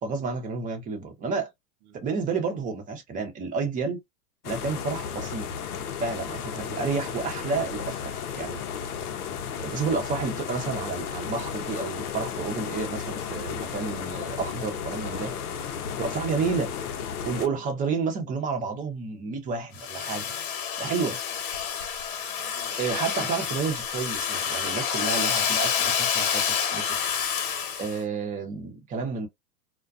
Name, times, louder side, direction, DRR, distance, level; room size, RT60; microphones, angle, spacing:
voice 1, 0.0-1.5 1.9-4.0 4.4-5.5 6.0-8.6 9.6-15.3 16.0-16.7 17.2-20.3 20.8-21.2 22.8-26.4 26.7-27.0 27.8-29.3, right 5 dB, 20° right, 0.7 m, -30 dB
sound 1, 4.4-17.5, left 7 dB, 90° left, 0.7 m, -34 dB
voice 2, 15.0-16.4 22.2-22.8, right 9 dB, 55° right, 0.8 m, -51 dB
Domestic sounds home sounds, 19.8-28.0, left 7 dB, 65° left, 1.1 m, -28 dB
2.3 x 2.2 x 2.4 m
hypercardioid pair, 130°, 43 cm